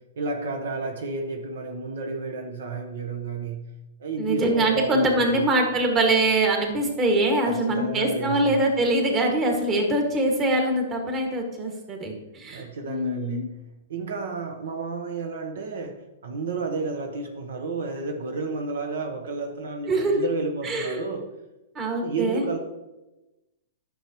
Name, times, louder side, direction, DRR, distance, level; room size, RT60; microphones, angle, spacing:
voice 1, 0.0-3.7 4.0-5.5 7.4-8.6 12.5-13.6 13.9-21.3 22.0-22.6, right 4 dB, 75° right, 4 dB, 1.0 m, -32 dB
voice 2, 4.2-13.5 19.9-20.2 20.6-21.0 21.8-22.6, right 1 dB, 25° right, 2 dB, 1.8 m, -23 dB
10.0 x 6.5 x 3.0 m, 1.0 s
hypercardioid pair, 130°, 0 cm